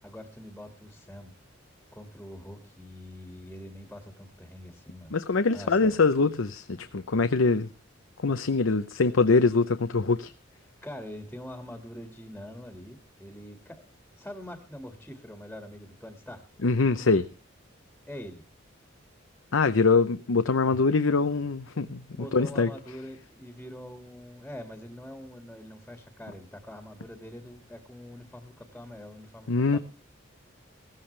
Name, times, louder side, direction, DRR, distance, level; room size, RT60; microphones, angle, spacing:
voice 1, 0.0-1.3 1.9-5.1 5.5-6.0 10.8-16.4 18.1-18.4 22.1-29.8, left 1 dB, 5° left, 5 dB, 1.9 m, -44 dB
voice 2, 5.1-7.7 8.2-10.3 16.6-17.3 19.5-22.0 22.3-22.7 29.5-29.8, left 4 dB, 80° left, 10 dB, 0.7 m, -23 dB
17.0 x 14.5 x 3.3 m, 0.32 s
head